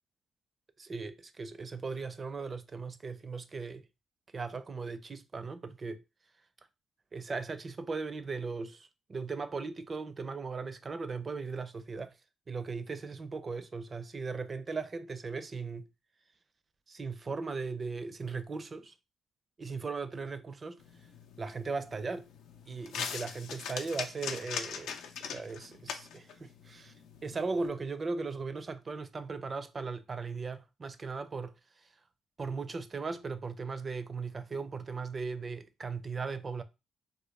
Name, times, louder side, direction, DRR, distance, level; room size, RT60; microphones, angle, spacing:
voice 1, 0.8-3.8 4.3-6.0 7.1-12.1 12.5-15.9 16.9-18.9 19.6-20.8 21.4-22.3 22.7-25.0 25.2-26.9 27.2-31.9 32.4-36.6, right 4 dB, 35° right, 0.4 m, -38 dB
sound 1, 20.8-27.7, left 7 dB, 85° left, 0.4 m, -42 dB
3.7 x 2.2 x 3.1 m
cardioid pair, 90°, 0 cm